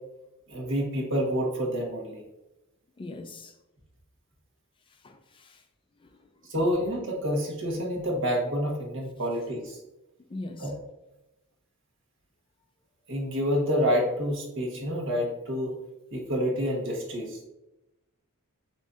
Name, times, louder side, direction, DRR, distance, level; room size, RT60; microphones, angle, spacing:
voice 1, 0.5-2.2 6.5-9.8 10.6-10.7 13.1-15.7 16.1-17.4, equal, 60° right, 1.2 m, -28 dB
voice 2, 3.0-3.5 5.0-5.6 10.3-10.7, left 2 dB, 25° left, 0.3 m, -40 dB
7.2 x 2.7 x 2.4 m
head